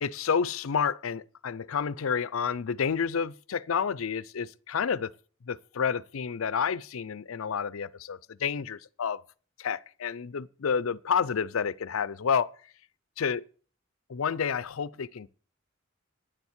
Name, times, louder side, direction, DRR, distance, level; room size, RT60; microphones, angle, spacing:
voice 1, 0.0-5.1 5.5-9.2 9.6-12.5 13.2-13.4 14.1-15.3, left 6 dB, 85° left, 0.5 m, -29 dB
10.5 x 7.2 x 8.1 m
head